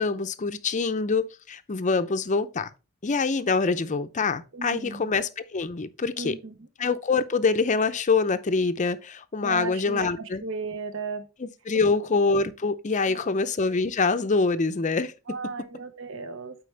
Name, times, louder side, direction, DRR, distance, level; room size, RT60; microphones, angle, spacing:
voice 1, 0.0-2.7 3.0-6.4 6.8-10.4 11.4-15.1, left 4 dB, 35° left, 0.5 m, -25 dB
voice 2, 4.5-5.0 6.2-6.6 9.4-11.3 13.0-13.4 15.3-16.6, right 4 dB, 60° right, 0.8 m, -35 dB
8.5 x 4.6 x 3.3 m
head